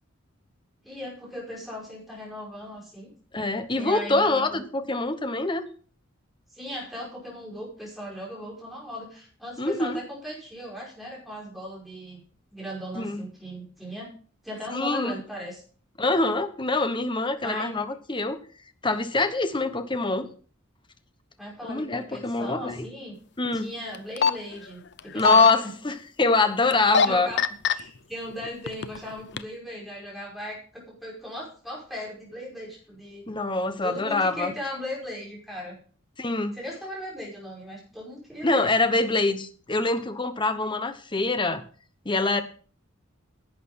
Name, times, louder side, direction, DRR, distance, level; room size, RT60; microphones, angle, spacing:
voice 1, 0.8-3.1 3.7-4.6 6.5-12.2 12.5-14.1 14.4-15.6 17.4-17.8 21.4-23.2 23.5-25.7 26.7-27.4 27.7-33.3 33.8-35.8 36.5-38.7, equal, ahead, -4 dB, 5.3 m, -38 dB
voice 2, 3.3-5.6 9.6-10.0 12.9-13.2 14.7-15.1 16.0-18.4 18.8-20.3 21.7-22.9 23.4-23.7 25.1-27.3 33.3-34.5 36.2-36.5 38.4-41.6 42.0-42.4, left 3 dB, 25° left, 10 dB, 1.0 m, -25 dB
sound 1, 23.9-24.3 25.0-25.5 26.7-27.1 27.4-27.7 28.5-29.0 29.4-29.5, left 5 dB, 55° left, 0.6 m, -19 dB
11.5 x 8.5 x 5.7 m, 0.43 s
head